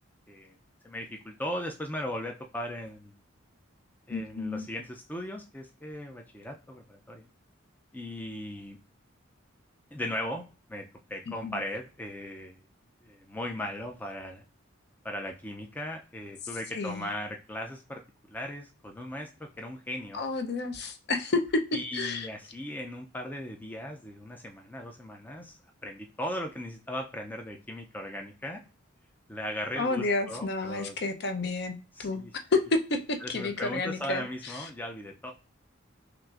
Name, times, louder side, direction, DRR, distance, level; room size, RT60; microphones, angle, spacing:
voice 1, 0.8-3.2 4.1-7.3 7.9-8.8 9.9-10.4 10.7-12.6 13.0-14.4 15.0-20.2 21.7-28.6 29.3-31.0 31.9-32.3 33.2-35.3, left 1 dB, 10° left, 3 dB, 0.3 m, -38 dB
voice 2, 4.1-4.7 11.4-11.6 16.7-17.0 20.1-21.6 21.9-22.3 29.8-32.2 32.5-34.7, left 3 dB, 55° left, 6 dB, 0.6 m, -30 dB
5.8 x 2.5 x 2.4 m, 0.35 s
head